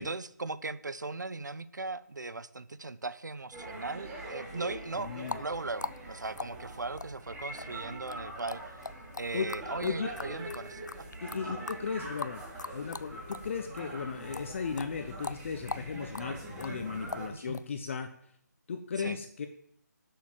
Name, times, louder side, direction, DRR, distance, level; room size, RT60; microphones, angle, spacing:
voice 1, 0.0-8.8 9.2-10.9 11.4-11.6 17.3-17.6 19.0-19.2, right 3 dB, 80° right, 15 dB, 1.0 m, -38 dB
sound 1, 3.5-17.3, right 1 dB, 10° right, 3.0 m, -43 dB
voice 2, 5.0-5.4 9.3-9.5 9.8-10.1 11.2-12.4 12.7-18.1 18.7-19.5, left 5 dB, 45° left, 7 dB, 1.1 m, -36 dB
sound 2, 5.1-13.5 13.8-17.7, left 4 dB, 80° left, 0.5 m, -42 dB
11.5 x 7.0 x 7.7 m, 0.68 s
figure-of-eight pair, 150°, 10 cm